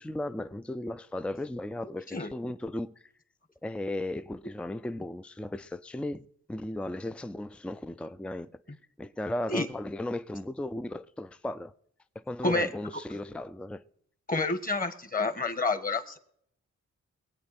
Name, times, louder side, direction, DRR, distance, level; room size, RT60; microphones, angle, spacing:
voice 1, 0.0-3.1 3.6-8.5 9.0-11.7 12.3-13.8, left 1 dB, 5° left, 0.5 m, -36 dB
voice 2, 14.3-16.2, left 3 dB, 30° left, 1.6 m, -28 dB
22.0 x 8.7 x 4.3 m
cardioid pair, 65°, 29 cm